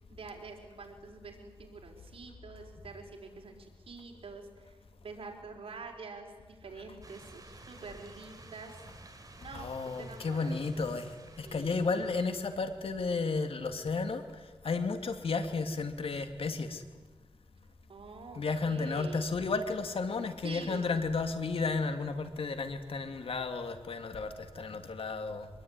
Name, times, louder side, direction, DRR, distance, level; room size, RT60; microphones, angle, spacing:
voice 1, 0.1-4.8 5.0-8.8 9.4-9.7 10.0-10.8 11.4-11.9 17.9-19.3 20.4-20.9, right 4 dB, 85° right, 1 dB, 4.9 m, -47 dB
sound 1, 7.0-12.6, right 2 dB, 40° right, 4.2 m, -53 dB
voice 2, 9.5-16.8 18.3-25.5, left 4 dB, 85° left, 7 dB, 2.5 m, -33 dB
24.5 x 21.0 x 9.7 m, 1.4 s
wide cardioid pair, 75°, 9 cm